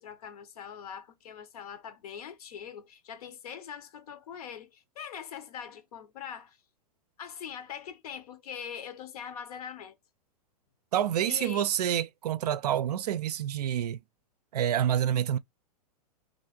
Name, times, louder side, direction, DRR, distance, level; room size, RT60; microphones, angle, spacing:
voice 1, 0.0-6.6 7.2-10.0 11.3-11.7, left 8 dB, 70° left, 0.9 m, -42 dB
voice 2, 10.9-14.0 14.5-15.4, right 10 dB, 80° right, 0.4 m, -28 dB
3.1 x 2.5 x 3.8 m
hypercardioid pair, 120°, 20 cm